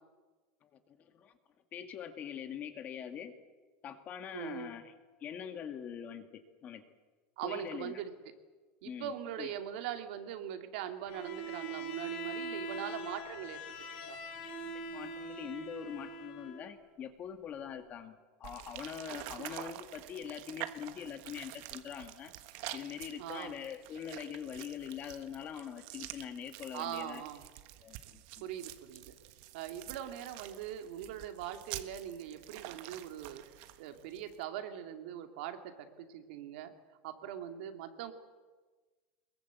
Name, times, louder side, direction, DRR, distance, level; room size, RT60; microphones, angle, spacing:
voice 1, 0.6-1.3 1.7-3.3 3.8-4.9 5.2-6.8 7.4-8.0 8.8-9.5 14.6-22.3 22.7-27.2 27.8-28.5, left 8 dB, 30° left, 8 dB, 1.8 m, -43 dB
voice 2, 4.3-4.7 7.4-8.1 8.8-13.6 14.1-14.2 19.4-19.6 23.2-23.6 26.7-27.5 28.4-29.1 29.5-33.4 33.8-36.7 37.0-38.1, right 10 dB, 70° right, 6 dB, 2.5 m, -41 dB
Bowed string instrument, 11.1-16.7, right 2 dB, 65° left, 5.0 m, -42 dB
sound 1, 18.4-34.4, right 15 dB, 55° right, 1.4 m, -48 dB
23.0 x 21.5 x 8.2 m, 1.3 s
supercardioid pair, 165°, 5 cm